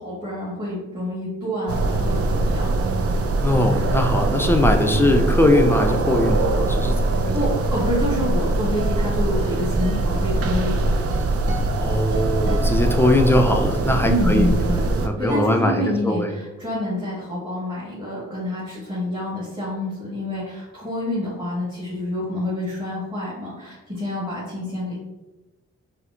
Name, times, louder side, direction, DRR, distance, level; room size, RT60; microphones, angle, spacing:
voice 1, 0.0-2.7 7.3-10.8 14.0-14.9 15.2-25.0, left 1 dB, 15° right, -8 dB, 1.5 m, -27 dB
sound 1, 1.7-15.1, right 2 dB, 50° right, 0.5 m, -22 dB
voice 2, 3.4-7.2 11.8-14.5 15.0-16.3, left 1 dB, 10° left, 4 dB, 0.4 m, -20 dB
sound 2, 8.8-13.6, right 1 dB, 85° right, 0.7 m, -34 dB
4.1 x 2.1 x 2.5 m, 1.1 s
cardioid pair, 50°, 30 cm